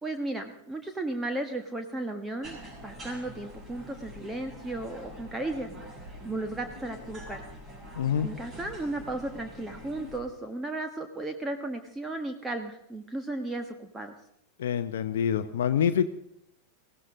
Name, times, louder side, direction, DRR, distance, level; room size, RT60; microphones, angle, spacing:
voice 1, 0.0-2.6 2.8-5.7 6.0-7.4 8.2-14.1, right 2 dB, 10° right, 5 dB, 1.4 m, -35 dB
sound 1, 2.4-10.2, equal, 25° right, 6.6 m, -45 dB
voice 2, 7.9-8.3 14.6-16.1, left 8 dB, 60° left, 9 dB, 0.8 m, -26 dB
21.0 x 16.5 x 3.8 m, 0.74 s
figure-of-eight pair, 90°, 0 cm